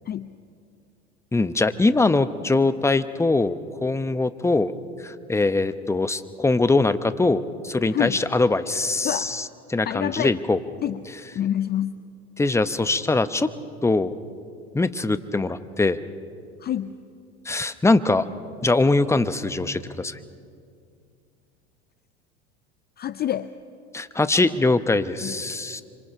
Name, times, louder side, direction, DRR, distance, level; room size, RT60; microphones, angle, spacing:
voice 1, 1.3-3.5 3.8-4.7 5.0-10.6 12.4-13.5 13.8-14.1 14.7-16.0 17.4-18.2 18.6-20.2 23.9-25.8, left 3 dB, 10° left, 11 dB, 0.9 m, -22 dB
voice 2, 9.9-10.3 10.8-11.0 11.3-12.0 16.6-17.0 23.0-23.5 25.2-25.4, left 11 dB, 30° left, 14 dB, 0.5 m, -27 dB
26.5 x 25.0 x 5.7 m, 2.3 s
hypercardioid pair, 80°, 34 cm